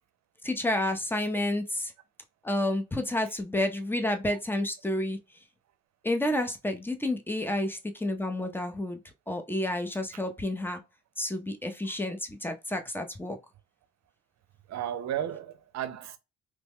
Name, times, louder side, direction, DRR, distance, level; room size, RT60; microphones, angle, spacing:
voice 1, 0.4-1.9 2.4-5.2 6.0-9.0 9.3-10.8 11.2-13.4, left 1 dB, 5° left, 0.6 m, -30 dB
voice 2, 14.7-16.2, right 10 dB, 60° right, 0.6 m, -34 dB
3.1 x 2.2 x 3.5 m
cardioid pair, 90°, 30 cm